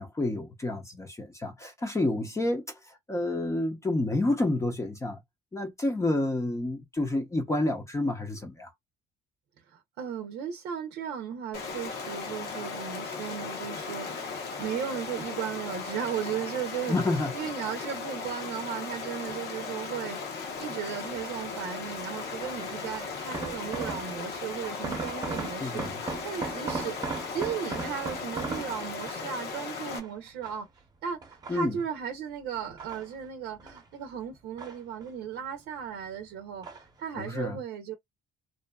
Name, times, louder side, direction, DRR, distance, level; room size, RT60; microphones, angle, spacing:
voice 1, 0.0-5.2 5.5-8.7 16.9-17.3 25.6-26.0 31.5-31.8 37.2-37.6, left 2 dB, 15° left, 0.6 m, -29 dB
voice 2, 9.7-17.0 17.3-20.2 20.6-25.9 26.2-30.7 31.0-36.7 37.0-37.9, right 8 dB, 85° right, 0.6 m, -36 dB
Stream, 11.5-30.0, left 4 dB, 70° left, 0.9 m, -37 dB
sound 1, 21.2-21.5 22.4-24.3 24.6-29.4 29.9-30.8 31.2-32.0 32.5-33.9 34.2-35.3 35.6-36.2 36.6-37.0 37.3-37.4, right 4 dB, 25° right, 0.8 m, -38 dB
2.6 x 2.4 x 2.3 m
cardioid pair, 110°, 17 cm